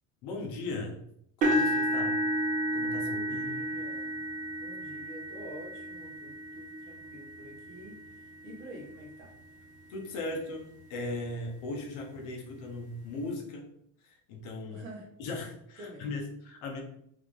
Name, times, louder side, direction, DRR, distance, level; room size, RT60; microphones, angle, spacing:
voice 1, 0.2-1.0 1.4-2.2 2.7-3.6 9.9-13.7 14.0-14.9 15.2-16.8, left 2 dB, 45° left, 1 dB, 0.9 m, -38 dB
sound 1, 1.4-9.4 10.1-10.3 10.7-10.8 12.2-12.3, equal, 20° right, 0.4 m, -32 dB
voice 2, 3.0-4.2 4.6-9.3 14.7-15.1 15.8-16.1, equal, 45° right, -1 dB, 1.4 m, -48 dB
3.6 x 3.5 x 3.6 m, 0.71 s
cardioid pair, 175°, 41 cm